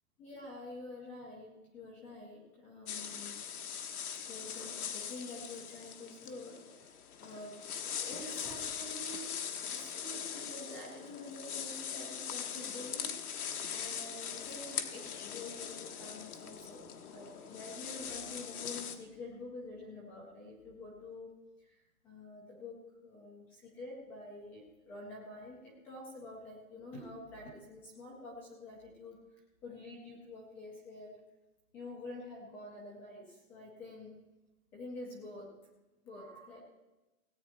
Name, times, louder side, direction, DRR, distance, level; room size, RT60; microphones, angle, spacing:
voice 1, 0.2-3.4 4.3-7.6 7.9-9.3 9.7-16.8 17.1-21.3 21.6-29.2 29.6-31.2 31.7-34.2 34.7-35.5 36.0-36.6, left 2 dB, 5° left, -4 dB, 0.4 m, -48 dB
sound 1, 2.9-19.0, left 8 dB, 90° left, 1.5 m, -41 dB
17.5 x 8.8 x 4.3 m, 1.1 s
hypercardioid pair, 165°, 43 cm